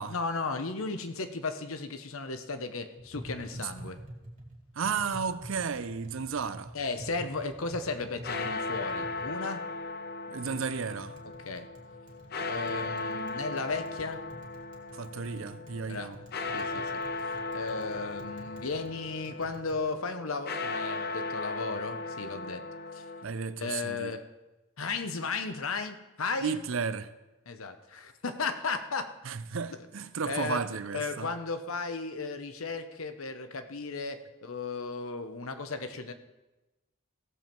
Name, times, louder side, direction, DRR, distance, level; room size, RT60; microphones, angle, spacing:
voice 1, 0.1-4.0 6.7-9.6 11.4-11.7 12.5-14.2 15.9-16.1 16.5-22.6 22.9-23.0 23.6-24.2 24.8-26.6 27.5-29.1 30.2-30.6 30.9-36.1, left 4 dB, 75° left, 0.9 m, -35 dB
Tap, 3.0-19.8, right 1 dB, 35° right, 2.0 m, -49 dB
voice 2, 4.8-6.7 10.3-11.1 15.0-16.2 23.2-24.1 26.4-27.1 29.3-31.3, right 5 dB, 65° right, 0.6 m, -33 dB
sound 1, 7.9-23.3, left 3 dB, 45° left, 0.7 m, -37 dB
16.5 x 7.2 x 4.5 m
head